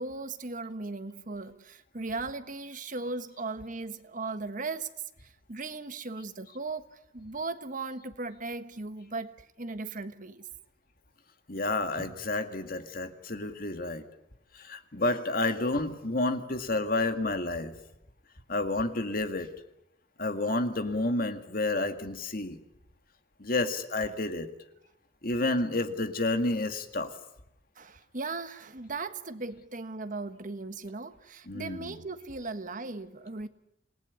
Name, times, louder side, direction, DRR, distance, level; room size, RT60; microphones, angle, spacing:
voice 1, 0.0-4.9 5.5-10.4 12.0-12.1 27.8-33.5, right 3 dB, 45° right, 1.3 m, -37 dB
voice 2, 11.5-14.0 14.6-17.7 18.5-19.5 20.2-22.6 23.4-24.5 25.2-27.1 31.5-32.0, left 2 dB, 50° left, 2.1 m, -30 dB
27.0 x 18.5 x 9.6 m
head